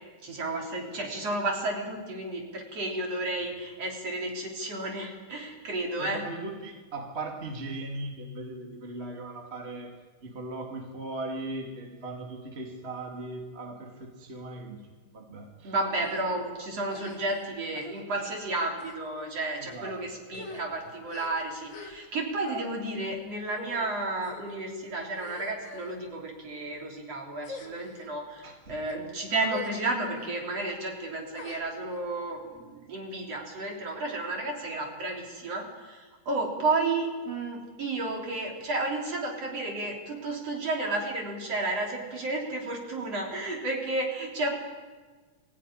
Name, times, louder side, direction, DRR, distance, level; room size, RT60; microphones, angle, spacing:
voice 1, 0.2-6.2 15.6-44.5, right 2 dB, 50° right, 0 dB, 4.4 m, -32 dB
voice 2, 6.0-9.9 10.2-14.8 15.1-15.7 19.6-19.9 20.3-20.6 28.4-28.8, right 2 dB, 20° right, 1 dB, 2.5 m, -38 dB
sound 1, 16.0-16.2 16.9-17.4 17.7-18.0 18.7-19.0 19.7-19.9 20.2-22.2 22.4-22.7 23.5-23.8 24.2-24.6 25.1-26.0 26.6-26.9 27.4-28.1 28.7-28.9 29.4-29.8 30.1-30.3 31.3-32.0, left 4 dB, 40° left, 2.4 m, -44 dB
22.0 x 15.0 x 10.0 m, 1.4 s
omnidirectional pair, 3.6 m